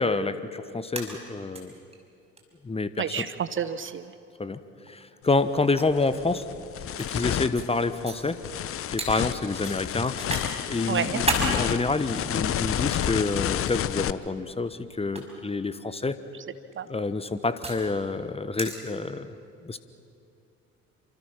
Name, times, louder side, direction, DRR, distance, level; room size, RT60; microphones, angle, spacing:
voice 1, 0.0-1.7 2.6-3.3 4.4-4.6 4.9-6.5 7.0-8.4 8.9-10.2 10.7-16.2 16.9-19.3 19.6-19.8, left 3 dB, 15° left, 13 dB, 1.2 m, -28 dB
sound 1, 0.9-1.6 1.9-2.0 2.4-2.5 3.6-3.8 4.9-5.0 5.8-7.1 7.5-7.7 8.0-8.2 9.0-9.1 9.6-10.5 10.9-11.5 12.3-13.1 14.1-14.4 15.0-15.2 16.5-17.8 18.5-18.8, right 2 dB, 15° right, 5.4 m, -32 dB
voice 2, 3.0-4.0 10.9-11.2 16.8-16.9, right 8 dB, 30° right, 13 dB, 0.8 m, -29 dB
sound 2, 5.3-5.4 5.9-14.1, left 10 dB, 35° left, 0.8 m, -30 dB
29.0 x 26.0 x 5.9 m, 2.6 s
figure-of-eight pair, 60°, 40 cm